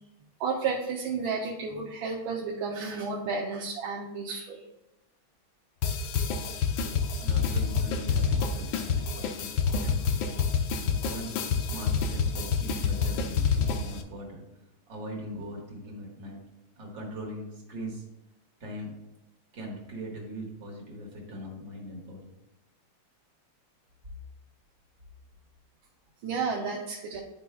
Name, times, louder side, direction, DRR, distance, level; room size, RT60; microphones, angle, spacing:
voice 1, 0.4-4.6 26.2-27.2, right 4 dB, 75° right, -2 dB, 1.5 m, -32 dB
sound 1, 5.8-14.0, left 5 dB, 75° left, 1.3 m, -28 dB
voice 2, 7.2-9.5 9.8-10.1 11.0-14.5 14.9-16.4 16.8-18.1 18.6-18.9 19.5-22.3, equal, 60° right, -2 dB, 2.2 m, -40 dB
11.0 x 4.6 x 2.3 m, 0.94 s
omnidirectional pair, 2.3 m